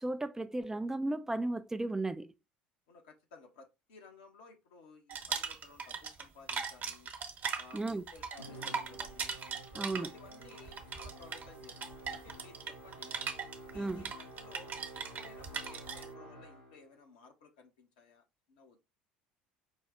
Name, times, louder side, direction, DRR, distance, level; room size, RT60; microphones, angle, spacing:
voice 1, 0.0-2.3 7.7-8.0 9.7-10.1 13.7-14.1, right 2 dB, 10° right, 0.4 m, -35 dB
voice 2, 2.9-7.1 7.5-9.3 9.7-13.2 13.7-18.8, left 4 dB, 70° left, 1.2 m, -57 dB
sound 1, 5.1-6.2 6.5-16.1, right 6 dB, 45° right, 1.1 m, -39 dB
Musical instrument, 8.4-16.9, right 1 dB, 90° left, 1.4 m, -51 dB
5.4 x 2.3 x 3.9 m
hypercardioid pair, 65°, 4 cm